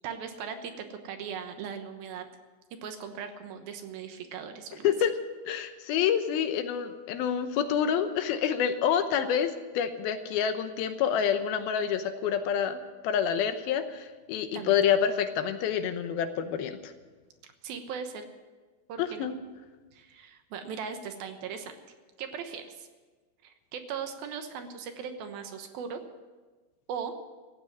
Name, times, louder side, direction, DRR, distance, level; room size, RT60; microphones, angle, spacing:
voice 1, 0.0-2.3 2.8-4.9 14.5-14.8 17.6-18.3 18.9-19.3 19.9-21.8 22.2-22.9 23.4-26.0 26.9-27.1, right 7 dB, 75° right, 7 dB, 2.9 m, -38 dB
voice 2, 5.5-16.9 19.0-19.4, left 8 dB, 80° left, 9 dB, 2.8 m, -28 dB
15.0 x 8.9 x 9.7 m, 1.3 s
omnidirectional pair, 4.4 m